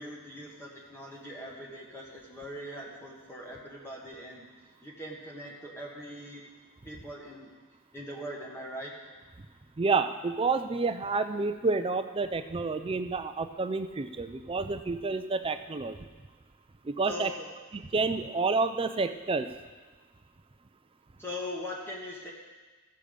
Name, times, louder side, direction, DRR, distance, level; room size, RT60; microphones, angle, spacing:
voice 1, 0.0-4.5 4.8-6.4 6.8-7.5 7.9-8.9 17.1-17.5 21.2-22.3, left 1 dB, 10° left, -3 dB, 1.3 m, -41 dB
voice 2, 9.8-16.0 16.8-17.3 17.7-19.5, right 4 dB, 25° right, 9 dB, 0.4 m, -29 dB
14.5 x 6.9 x 5.1 m, 1.3 s
head